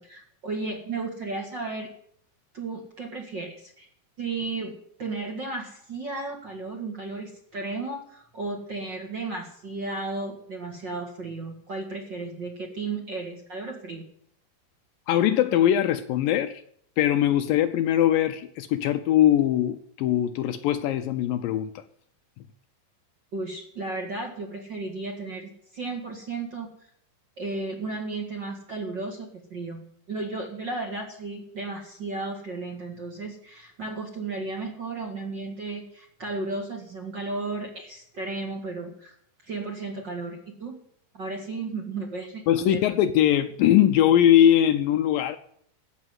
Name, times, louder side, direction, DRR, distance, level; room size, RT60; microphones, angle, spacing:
voice 1, 0.0-1.9 2.5-3.9 4.2-4.7 5.0-14.0 23.3-26.7 27.4-39.2 39.4-40.8 41.1-42.8, right 3 dB, 40° right, 1.9 m, -34 dB
voice 2, 15.1-16.6 17.0-21.8 22.4-22.5 42.5-45.4, left 11 dB, 75° left, 2.2 m, -21 dB
15.5 x 6.7 x 9.5 m
omnidirectional pair, 4.4 m